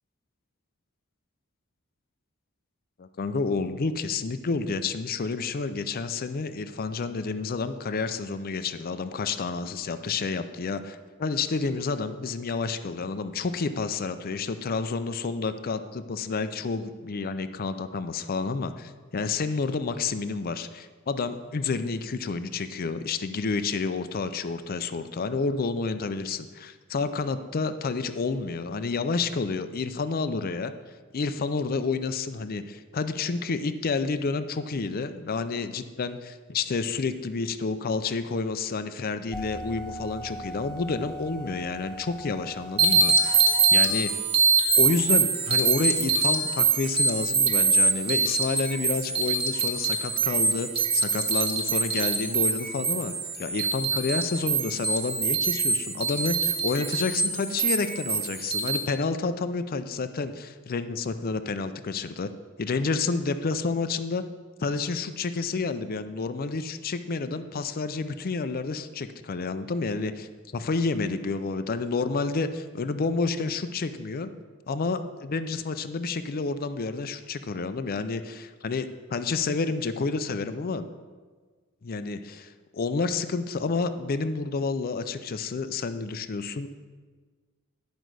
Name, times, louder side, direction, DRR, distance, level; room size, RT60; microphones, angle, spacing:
voice 1, 3.0-30.7 31.1-43.4 43.7-44.1 44.8-53.1 53.4-62.3 62.6-64.3 64.6-74.3 74.7-80.9 81.8-86.7, left 4 dB, 45° left, 11 dB, 0.5 m, -29 dB
sound 1, 39.3-43.8, right 1 dB, 5° left, 1.8 m, -40 dB
sound 2, 42.8-58.8, right 4 dB, 30° right, 1.3 m, -24 dB
11.0 x 5.2 x 6.2 m, 1.5 s
head